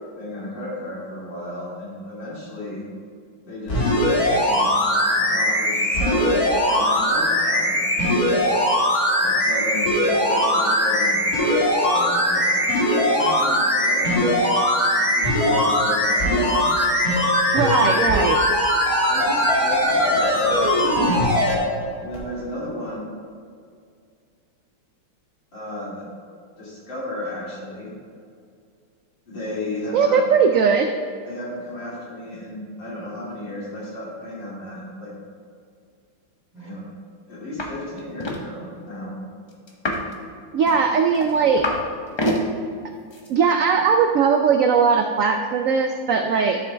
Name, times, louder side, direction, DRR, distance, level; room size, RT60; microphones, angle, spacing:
voice 1, 0.2-2.8 3.4-4.8 5.1-8.3 9.2-12.6 13.0-14.2 15.0-16.7 17.7-17.9 19.1-21.6 22.0-23.1 25.5-26.1 26.6-27.9 29.3-30.2 31.3-35.1 36.5-36.8 37.3-39.2, left 1 dB, 80° left, -7 dB, 3.5 m, -33 dB
sound 1, 3.7-21.5 22.1-22.2, equal, 55° left, 2.9 m, -20 dB
voice 2, 17.5-18.4 29.9-30.9 40.5-41.7 43.3-46.6, right 6 dB, 90° right, 5 dB, 0.7 m, -19 dB
sound 2, 37.6-37.7 38.0-38.4 39.7-40.1 40.7-41.8 42.1-42.4 43.1-43.3, left 1 dB, 30° left, 0.4 m, -26 dB
12.5 x 6.9 x 3.4 m, 2.2 s
omnidirectional pair, 2.0 m